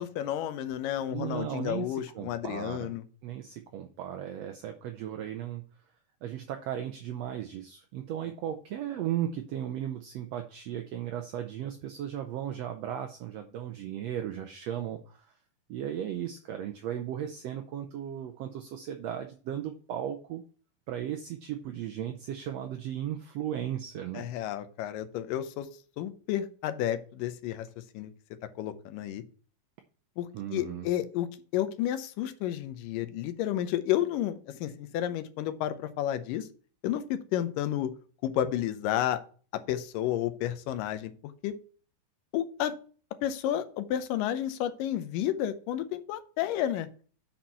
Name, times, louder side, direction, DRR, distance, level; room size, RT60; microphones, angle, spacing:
voice 1, 0.0-3.0 24.1-25.7 26.0-27.7 27.9-28.1 28.6-29.2 30.2-31.3 31.5-36.5 36.8-37.9 38.2-39.2 39.7-41.1 41.4-41.6 42.3-42.8 43.2-46.9, left 11 dB, 90° left, 11 dB, 2.4 m, -31 dB
voice 2, 1.1-2.9 3.2-5.6 6.2-15.3 15.7-20.4 20.9-24.3 30.3-30.9, right 10 dB, 85° right, 5 dB, 1.4 m, -36 dB
7.7 x 4.4 x 5.5 m, 0.41 s
omnidirectional pair, 3.7 m